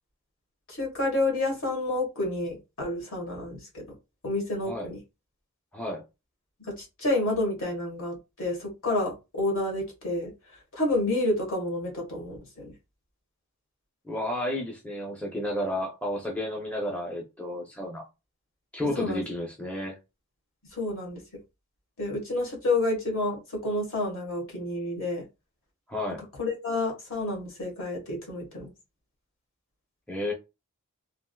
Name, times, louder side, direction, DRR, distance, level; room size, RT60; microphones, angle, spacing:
voice 1, 0.7-3.8 4.2-5.0 6.8-10.3 10.7-12.7 19.0-19.2 20.7-21.2 22.0-25.2 26.4-28.7, left 2 dB, 65° left, 1.4 m, -29 dB
voice 2, 14.0-18.0 18.7-20.0 25.9-26.2 30.1-30.3, left 1 dB, 5° left, 0.5 m, -32 dB
3.4 x 2.4 x 2.2 m
head